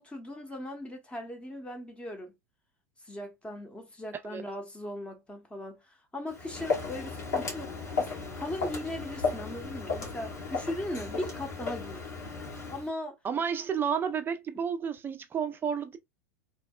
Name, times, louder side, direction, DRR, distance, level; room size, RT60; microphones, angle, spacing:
voice 1, 0.0-2.3 3.0-7.7 8.0-8.1 8.4-12.0 12.7-13.2, left 1 dB, 10° left, 0.8 m, -38 dB
Walk footsteps, 6.3-12.9, left 4 dB, 80° left, 1.1 m, -34 dB
voice 2, 13.2-16.0, right 7 dB, 25° right, 0.4 m, -31 dB
2.8 x 2.1 x 2.2 m
hypercardioid pair, 85°, 9 cm